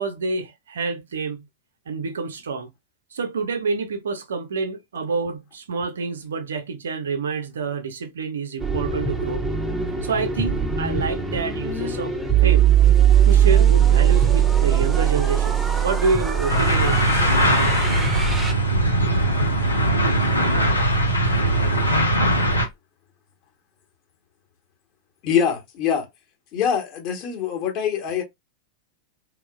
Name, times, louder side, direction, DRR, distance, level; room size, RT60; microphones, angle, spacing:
voice 1, 0.0-1.5 1.9-2.7 3.1-9.4 10.0-12.1 12.4-12.7 13.2-17.3, right 4 dB, 65° right, 0.5 m, -27 dB
sound 1, 8.6-18.5, right 9 dB, 10° right, 0.5 m, -20 dB
sound 2, 16.5-22.7, right 1 dB, 90° left, 0.6 m, -20 dB
voice 2, 25.2-26.1 26.5-28.2, left 8 dB, 40° left, 0.9 m, -24 dB
2.9 x 2.0 x 2.2 m
figure-of-eight pair, 90°, 0 cm